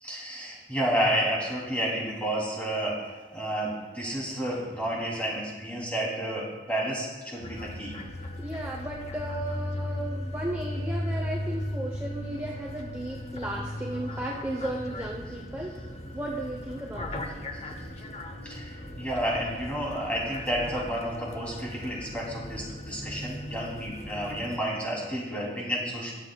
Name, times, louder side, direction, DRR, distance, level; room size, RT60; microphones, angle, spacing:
voice 1, 0.0-7.9 18.4-26.1, right 1 dB, 10° left, -5 dB, 2.8 m, -31 dB
sound 1, 7.4-24.6, left 1 dB, 35° left, 0.8 m, -37 dB
voice 2, 8.4-17.2, right 1 dB, 10° right, -2 dB, 0.7 m, -35 dB
21.0 x 7.5 x 2.3 m, 1.3 s
head